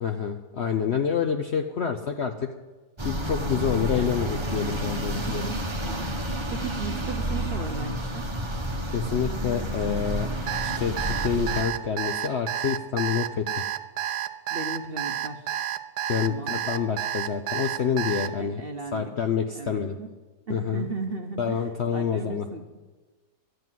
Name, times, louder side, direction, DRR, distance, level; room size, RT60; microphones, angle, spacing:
voice 1, 0.0-2.5 3.0-5.5 8.9-10.3 10.6-13.5 16.1-18.6 18.9-20.0 20.5-20.9 21.4-22.5, left 7 dB, 60° left, 5 dB, 0.7 m, -27 dB
sound 1, 3.0-11.6, right 1 dB, 20° right, 1.0 m, -30 dB
voice 2, 5.8-6.2 6.5-8.2 14.5-15.5 16.1-16.6 18.4-19.1 19.5-20.1 20.5-22.6, right 3 dB, 45° right, 4 dB, 0.8 m, -36 dB
Alarm, 10.5-18.3, right 12 dB, 80° right, 1.3 m, -30 dB
12.5 x 7.9 x 9.2 m, 1.2 s
omnidirectional pair, 1.8 m